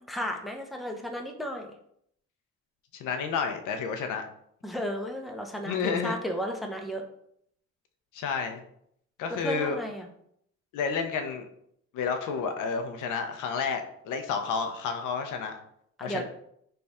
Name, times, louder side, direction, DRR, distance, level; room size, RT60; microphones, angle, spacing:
voice 1, 0.1-1.7 4.6-7.0 9.4-10.1 16.0-16.2, equal, ahead, 3 dB, 0.5 m, -34 dB
voice 2, 2.9-4.2 5.6-6.2 8.1-8.6 9.2-9.8 10.7-11.5 11.9-15.6 16.0-16.2, left 5 dB, 85° left, 6 dB, 0.6 m, -30 dB
3.3 x 2.3 x 4.1 m, 0.70 s
cardioid pair, 90°, 30 cm